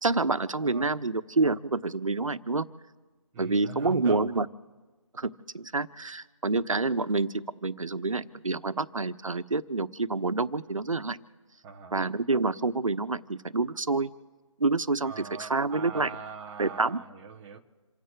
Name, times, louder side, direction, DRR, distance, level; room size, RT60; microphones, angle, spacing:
voice 1, 0.0-2.7 3.4-4.5 5.1-11.2 11.9-14.1 14.6-16.1 16.6-17.0, right 3 dB, 80° right, 12 dB, 1.1 m, -28 dB
voice 2, 0.6-1.0 3.3-4.3 11.6-12.0 15.0-17.6, right 5 dB, 10° right, -1 dB, 0.8 m, -42 dB
28.5 x 9.5 x 4.7 m, 1.3 s
figure-of-eight pair, 160°, 17 cm